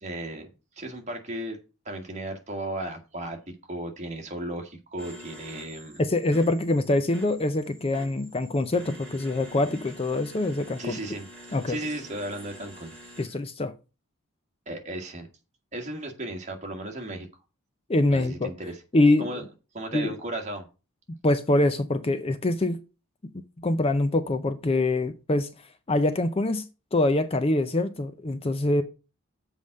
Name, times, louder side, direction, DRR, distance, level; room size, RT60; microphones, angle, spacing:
voice 1, 0.0-0.5 0.8-1.6 1.9-6.0 10.8-12.9 14.7-15.3 15.7-17.3 18.1-18.8 19.2-19.4 19.7-20.7, right 1 dB, 30° right, 1.8 m, -35 dB
sound 1, 5.0-13.3, equal, 5° left, 3.4 m, -47 dB
voice 2, 6.0-11.0 11.5-11.8 13.2-13.7 17.9-18.5 18.9-19.3 19.9-20.1 21.1-22.8 23.6-25.5 25.9-26.7 26.9-28.8, left 2 dB, 25° left, 0.5 m, -24 dB
7.4 x 4.9 x 6.4 m
head